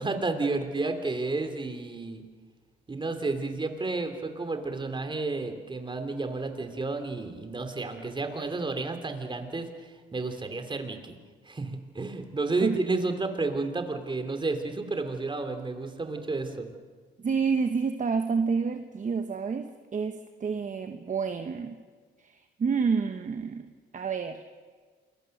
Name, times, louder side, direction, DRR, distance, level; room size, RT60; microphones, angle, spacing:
voice 1, 0.0-2.2 2.9-11.2 11.4-16.7, right 3 dB, 25° right, 7 dB, 3.0 m, -31 dB
voice 2, 17.2-21.8 22.2-24.4, right 5 dB, 40° right, 7 dB, 1.2 m, -29 dB
28.0 x 22.0 x 6.7 m, 1.5 s
cardioid pair, 90°, 20 cm